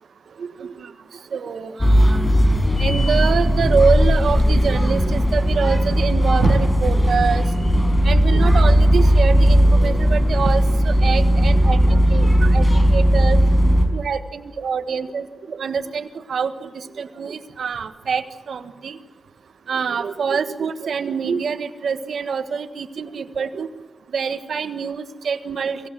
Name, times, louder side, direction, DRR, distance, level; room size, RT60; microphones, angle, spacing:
voice 1, 0.4-0.9 1.3-2.2 2.8-7.4 8.0-12.6 12.9-13.4 13.9-16.7 17.0-19.0 19.7-23.7 24.1-25.8, right 6 dB, 80° right, 9 dB, 1.5 m, -25 dB
sound 1, 1.8-13.9, equal, 20° left, 4.8 m, -16 dB
24.5 x 17.0 x 7.7 m, 1.3 s
cardioid pair, 70°, 0 cm